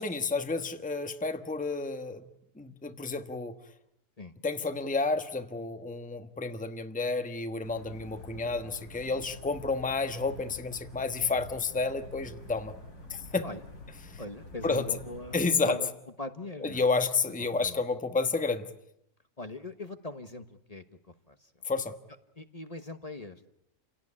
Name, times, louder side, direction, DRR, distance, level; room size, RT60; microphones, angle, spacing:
voice 1, 0.0-2.2 2.6-3.5 4.4-12.7 13.1-13.5 14.6-14.9 15.3-15.8 16.6-18.7 21.6-21.9, left 4 dB, 5° left, 8 dB, 1.2 m, -30 dB
sound 1, 7.6-15.6, left 2 dB, 85° left, 4.7 m, -48 dB
voice 2, 14.2-15.9 16.2-16.9 17.4-17.8 19.4-21.5 22.4-23.4, left 2 dB, 25° left, 9 dB, 1.2 m, -41 dB
29.5 x 17.5 x 9.9 m, 0.80 s
omnidirectional pair, 1.6 m